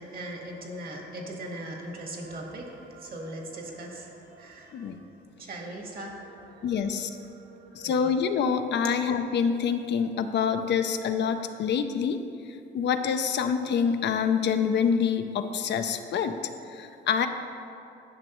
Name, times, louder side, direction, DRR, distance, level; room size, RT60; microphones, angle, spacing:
voice 1, 0.0-5.0 5.4-8.1, right 1 dB, 45° right, 0 dB, 1.5 m, -40 dB
voice 2, 6.6-7.1 7.7-12.2 12.7-16.4 16.7-17.3, left 7 dB, 60° left, 8 dB, 0.5 m, -26 dB
11.0 x 6.1 x 3.0 m, 2.6 s
cardioid pair, 90°, 20 cm